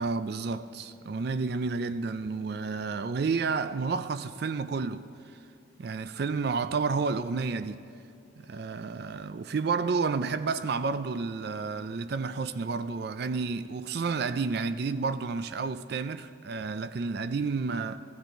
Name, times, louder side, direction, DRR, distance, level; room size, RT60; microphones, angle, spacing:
voice 1, 0.0-5.4 5.8-7.8 8.4-18.0, right 4 dB, 55° right, 0.4 m, -31 dB
16.0 x 15.5 x 4.5 m
head